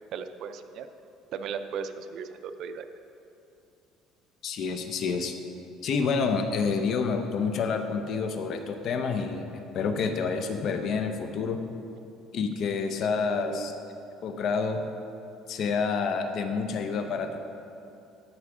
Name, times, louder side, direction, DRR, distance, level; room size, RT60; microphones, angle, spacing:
voice 1, 0.1-0.9 1.3-2.9 13.2-13.7, right 7 dB, 55° right, 9 dB, 0.5 m, -37 dB
voice 2, 4.4-5.4 5.8-11.6 12.3-13.7 14.2-14.8 15.5-17.4, left 5 dB, 55° left, 6 dB, 0.7 m, -28 dB
13.0 x 4.9 x 4.9 m, 2.7 s
cardioid pair, 120°, 0 cm